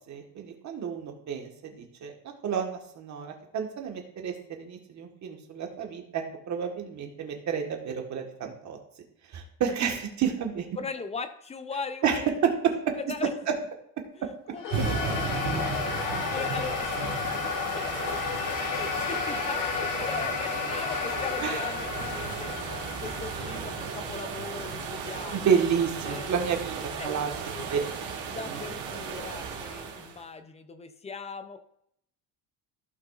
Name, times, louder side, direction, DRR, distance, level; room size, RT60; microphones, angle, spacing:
voice 1, 0.1-2.1 2.4-8.8 9.3-10.7 12.0-12.5 21.4-21.6 25.3-26.7 27.0-27.3 27.7-27.8 28.5-28.6, right 7 dB, 40° right, 3 dB, 1.5 m, -30 dB
voice 2, 10.8-12.4 13.1-13.3 14.2-17.1 17.8-17.9 18.7-25.5 26.0-26.6 26.9-27.8 28.3-31.6, left 4 dB, 15° left, 9 dB, 0.4 m, -39 dB
sound 1, 14.6-21.5, left 8 dB, 70° left, 1.0 m, -42 dB
sound 2, 14.6-25.1, left 7 dB, 50° left, 1.3 m, -33 dB
sound 3, 14.7-30.2, right 5 dB, 80° right, 2.5 m, -35 dB
15.0 x 5.9 x 2.5 m, 0.72 s
cardioid pair, 155°, 42 cm